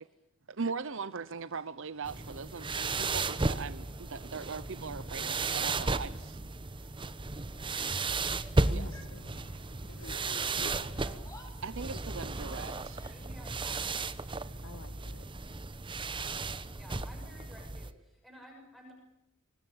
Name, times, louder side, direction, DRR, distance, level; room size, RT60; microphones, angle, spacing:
voice 1, 0.5-6.4 8.7-8.8 11.6-13.0, right 5 dB, 65° right, 14 dB, 0.8 m, -40 dB
sound 1, 0.7-15.3, right 2 dB, 85° right, 6.9 m, -64 dB
sound 2, 2.0-17.9, right 3 dB, 25° right, 1.0 m, -34 dB
Yell, 8.3-9.7 10.0-13.5, left 1 dB, 15° left, 5.9 m, -57 dB
voice 2, 8.6-11.0 11.9-12.0 14.6-15.5, left 2 dB, 65° left, 9 dB, 1.6 m, -49 dB
voice 3, 10.5-11.3 13.0-14.1 15.8-16.4 16.7-18.9, equal, ahead, 1 dB, 5.9 m, -54 dB
24.5 x 20.0 x 8.8 m, 0.81 s
head